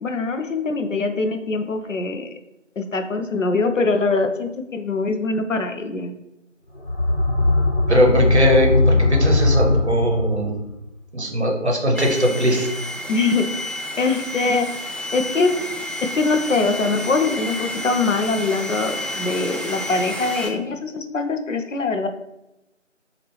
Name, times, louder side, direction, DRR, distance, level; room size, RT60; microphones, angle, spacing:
voice 1, 0.0-2.3 2.8-6.1 13.1-14.7 15.1-15.5 16.0-22.1, left 3 dB, 75° left, 6 dB, 0.5 m, -23 dB
sound 1, 6.7-10.5, left 2 dB, 50° left, 1.1 m, -19 dB
voice 2, 7.9-10.5 11.1-12.7, equal, 60° right, 1 dB, 0.8 m, -20 dB
sound 2, 11.9-20.5, left 1 dB, 5° left, 0.3 m, -31 dB
2.9 x 2.4 x 3.3 m, 0.90 s
figure-of-eight pair, 180°, 38 cm